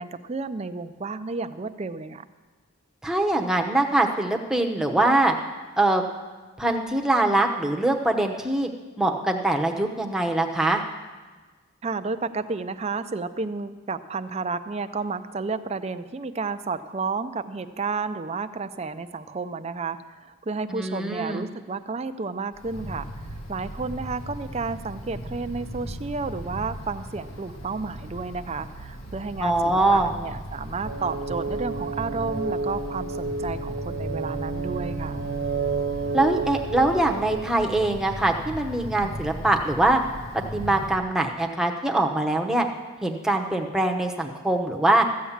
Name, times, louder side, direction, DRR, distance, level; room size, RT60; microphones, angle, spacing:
voice 1, 0.0-2.3 11.8-23.1 23.5-35.2, right 4 dB, 30° right, 10 dB, 0.4 m, -31 dB
voice 2, 3.0-5.3 5.8-6.0 6.6-8.7 9.0-10.8 20.7-21.4 29.4-30.1 36.1-40.0 40.3-42.7 43.0-45.1, right 2 dB, 5° right, 2 dB, 0.9 m, -23 dB
Wind, 22.5-40.9, equal, 70° left, 1.9 m, -37 dB
sound 1, 30.8-37.5, right 4 dB, 60° right, 1.0 m, -31 dB
14.0 x 8.4 x 7.3 m, 1.3 s
head